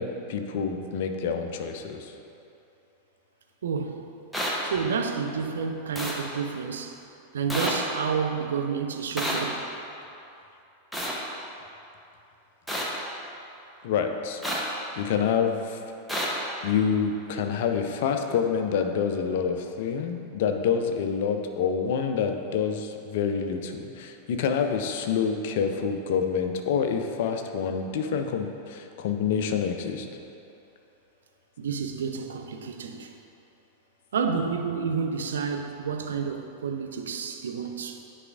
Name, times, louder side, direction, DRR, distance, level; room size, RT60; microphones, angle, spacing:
voice 1, 0.0-2.1 13.8-14.4 14.9-15.8 16.6-30.1, left 6 dB, 50° left, 5 dB, 0.5 m, -27 dB
voice 2, 3.6-4.0 4.6-6.9 7.3-9.7 31.6-33.1 34.1-38.0, right 6 dB, 65° right, 5 dB, 0.4 m, -30 dB
sound 1, 4.3-4.5 6.0-6.1 7.5-7.7 9.2-9.4 10.9-11.1 12.7-12.8 14.4-14.6 16.1-16.3, equal, ahead, 0.9 m, -28 dB
9.7 x 4.8 x 2.4 m, 2.8 s
figure-of-eight pair, 90°, 0 cm